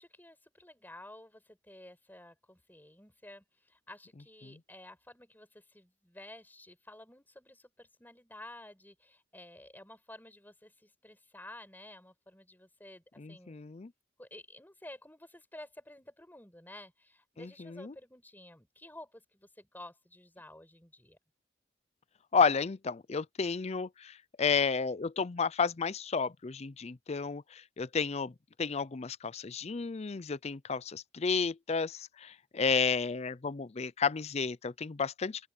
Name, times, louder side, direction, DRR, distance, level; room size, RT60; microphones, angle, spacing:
voice 1, 0.0-13.6 14.2-21.2, left 1 dB, 10° left, 5.3 m, -52 dB
voice 2, 13.2-13.9 17.4-17.9 22.3-28.3 28.6-35.5, left 5 dB, 35° left, 0.5 m, -32 dB
open air
head